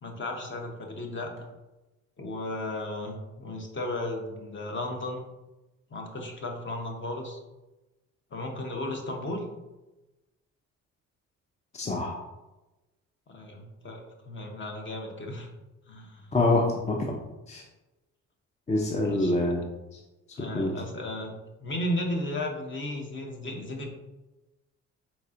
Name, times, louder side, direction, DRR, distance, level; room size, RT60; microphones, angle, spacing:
voice 1, 0.0-1.3 2.2-5.2 5.9-7.4 8.3-9.4 13.3-15.5 15.9-16.3 19.0-19.4 20.4-23.9, left 1 dB, 40° left, 2 dB, 0.9 m, -35 dB
voice 2, 11.7-12.2 16.3-17.2 17.5-17.6 18.7-19.6 19.9-20.0 20.4-20.7, left 2 dB, 25° left, 0 dB, 0.5 m, -26 dB
4.1 x 4.1 x 2.5 m, 1.1 s
cardioid pair, 90°, 30 cm